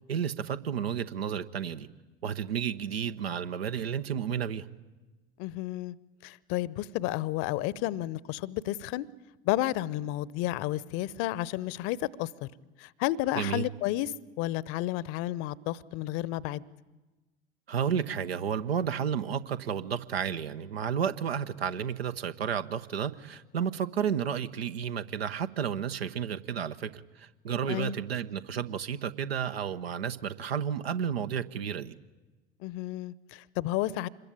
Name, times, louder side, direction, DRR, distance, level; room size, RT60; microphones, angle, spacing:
voice 1, 0.1-1.9 2.2-4.7 13.4-13.6 17.7-32.0, right 8 dB, 70° right, 1.1 m, -32 dB
voice 2, 5.4-5.9 6.2-9.1 9.4-12.5 12.8-14.1 14.4-16.6 27.7-28.0 32.6-34.1, left 15 dB, 45° left, 0.9 m, -31 dB
26.5 x 21.5 x 8.8 m
figure-of-eight pair, 70°, 31 cm